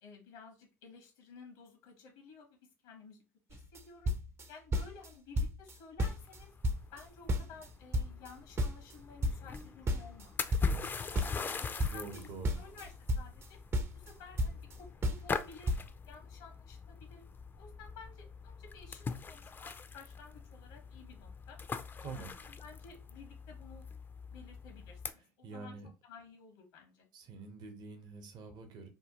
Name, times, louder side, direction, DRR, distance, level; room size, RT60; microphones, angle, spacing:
voice 1, 0.0-2.6 2.8-3.2 3.5-4.1 4.5-6.5 6.9-10.4 11.0-12.3 12.6-13.6 14.0-15.7 16.1-17.2 17.6-21.6 22.0-23.9 24.3-25.8 26.1-27.1, left 5 dB, 80° left, 2 dB, 1.0 m, -54 dB
sound 1, 3.5-5.1 5.4-5.7 6.0-7.7 7.9-10.9 11.2-13.5 13.7-14.8 15.0-15.4 15.7-15.8, equal, 30° right, 0.5 m, -33 dB
sound 2, 6.1-25.1, left 5 dB, 25° left, 0.4 m, -42 dB
voice 2, 11.9-12.6 22.0-22.3 25.4-25.9 27.1-28.9, right 4 dB, 55° right, 5 dB, 0.8 m, -46 dB
2.8 x 2.1 x 2.9 m, 0.31 s
hypercardioid pair, 85°, 9 cm